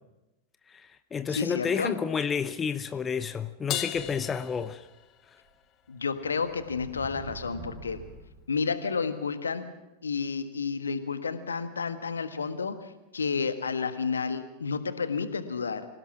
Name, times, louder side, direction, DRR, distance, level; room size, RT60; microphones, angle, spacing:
voice 1, 0.7-4.9, left 6 dB, 20° left, 13 dB, 0.8 m, -30 dB
voice 2, 1.3-1.9 5.9-8.0 8.5-9.6 10.0-15.9, left 5 dB, 75° left, 10 dB, 1.6 m, -31 dB
Crash cymbal, 3.7-5.4, left 13 dB, 35° left, 1.3 m, -36 dB
sound 1, 3.9-4.9 5.5-5.6 6.1-8.6, right 4 dB, 45° right, 4.0 m, -46 dB
26.0 x 17.0 x 6.1 m, 0.99 s
figure-of-eight pair, 90°, 0 cm